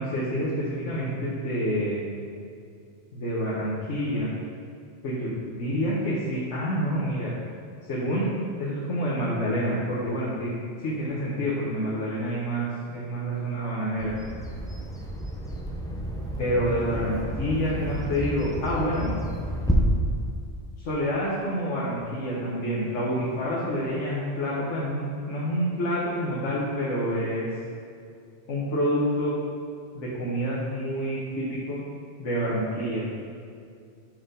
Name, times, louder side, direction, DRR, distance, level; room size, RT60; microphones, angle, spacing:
voice 1, 0.0-2.0 3.1-4.3 5.0-7.3 7.9-8.3 8.6-10.5 10.8-14.1 16.4-19.2 20.8-27.5 28.5-29.3 29.9-31.8 32.2-33.1, equal, 85° left, -7 dB, 1.4 m, -28 dB
Bird vocalization bird call bird song, 14.0-19.7, equal, 5° left, 0.5 m, -32 dB
6.0 x 4.8 x 5.0 m, 2.4 s
omnidirectional pair, 1.2 m